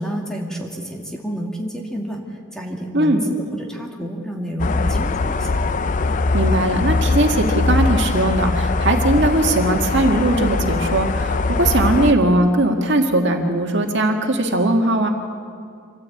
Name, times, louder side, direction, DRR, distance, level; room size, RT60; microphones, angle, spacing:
voice 1, 0.0-5.6, equal, 5° left, 0 dB, 2.1 m, -29 dB
sound 1, 4.6-12.1, left 3 dB, 40° left, 0.5 m, -21 dB
voice 2, 6.3-15.1, right 1 dB, 60° right, 3 dB, 1.9 m, -19 dB
25.5 x 14.5 x 8.6 m, 2.2 s
head